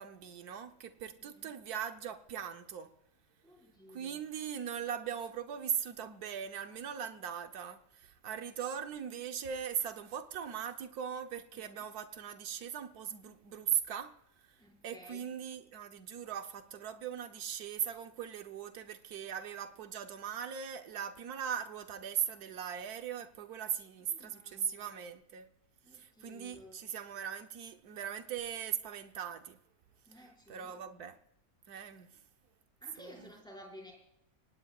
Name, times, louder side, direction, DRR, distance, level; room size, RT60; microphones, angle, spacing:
voice 1, 0.0-2.9 3.9-14.1 14.8-25.5 25.9-29.6 30.5-31.2 31.7-32.1 33.0-33.3, right 8 dB, 85° right, 1.4 m, -39 dB
voice 2, 3.4-4.2 11.5-11.8 14.6-15.3 24.0-25.0 25.8-26.8 30.1-30.9 32.8-33.9, equal, 5° left, 5.3 m, -55 dB
25.0 x 18.5 x 2.4 m
omnidirectional pair, 1.6 m